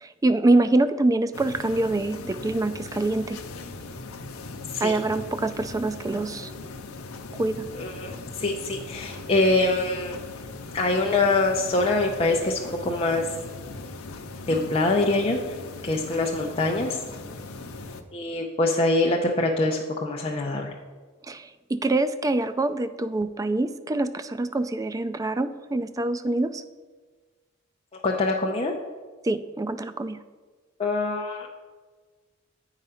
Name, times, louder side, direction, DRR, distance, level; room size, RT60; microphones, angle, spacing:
voice 1, 0.0-3.4 4.8-6.5 7.4-7.7 21.3-26.6 29.2-30.2, right 2 dB, 15° right, 11 dB, 0.3 m, -25 dB
sound 1, 1.3-18.0, left 3 dB, 85° left, 0.7 m, -39 dB
voice 2, 7.7-10.2 10.7-13.3 14.5-15.5 15.8-17.0 18.1-20.7 28.0-28.7 30.8-31.5, left 2 dB, 30° left, -1 dB, 0.6 m, -24 dB
8.8 x 4.8 x 5.6 m, 1.4 s
head